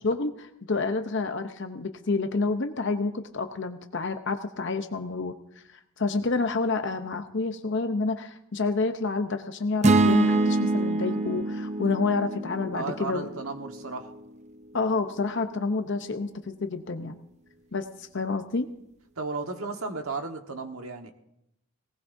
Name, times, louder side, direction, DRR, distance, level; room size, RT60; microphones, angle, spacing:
voice 1, 0.0-5.4 5.7-13.3 14.7-17.2 17.7-18.7, left 3 dB, 60° left, 7 dB, 0.7 m, -29 dB
sound 1, 9.8-14.1, right 2 dB, 30° right, 0.5 m, -25 dB
voice 2, 12.7-14.1 19.2-21.1, right 4 dB, 85° right, 5 dB, 1.4 m, -34 dB
18.5 x 18.5 x 2.7 m, 0.79 s
head